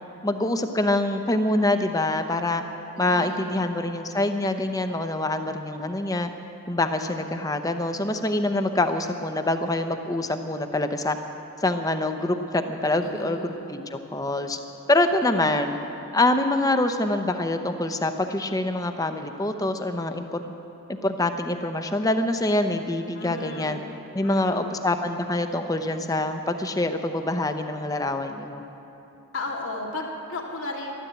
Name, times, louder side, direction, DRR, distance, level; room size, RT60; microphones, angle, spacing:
voice 1, 0.2-2.6 3.0-6.3 6.7-11.2 11.6-14.6 14.9-15.8 16.1-20.5 20.9-23.8 24.1-28.6, left 2 dB, 15° left, 7 dB, 0.6 m, -25 dB
voice 2, 2.9-3.6 13.0-13.7 23.1-23.9 24.2-24.8 29.3-30.9, left 2 dB, 65° left, -1 dB, 2.1 m, -35 dB
13.0 x 12.5 x 8.0 m, 2.9 s
head